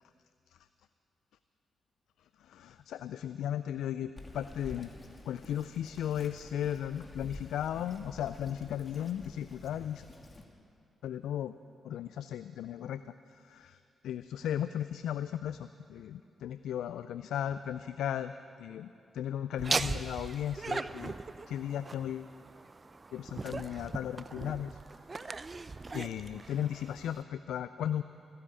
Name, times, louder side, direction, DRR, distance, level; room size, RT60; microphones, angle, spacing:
voice 1, 2.4-4.9 5.3-10.1 11.0-11.5 11.8-13.0 13.3-21.1 21.5-22.3 23.1-24.8 25.1-25.5 25.9-28.0, left 10 dB, 75° left, 12 dB, 0.3 m, -36 dB
Bird vocalization bird call bird song, 4.2-10.4, left 2 dB, 30° left, 2.2 m, -49 dB
Laughter, 19.6-27.2, right 3 dB, 40° right, 0.6 m, -39 dB
15.5 x 10.5 x 8.6 m, 2.5 s
hypercardioid pair, 40°, 0 cm